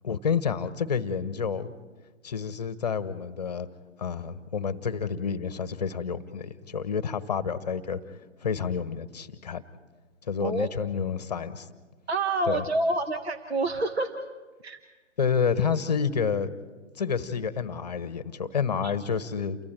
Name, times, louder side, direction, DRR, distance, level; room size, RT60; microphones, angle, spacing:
voice 1, 0.0-1.7 2.2-3.7 4.0-8.0 8.4-9.6 10.2-11.7 12.5-12.6 15.2-16.5 17.0-19.6, left 6 dB, 35° left, 14 dB, 1.1 m, -29 dB
voice 2, 12.1-14.2 14.6-14.8 18.8-18.9, right 2 dB, 55° right, 7 dB, 1.5 m, -27 dB
29.5 x 24.0 x 4.5 m, 1.3 s
figure-of-eight pair, 145°, 37 cm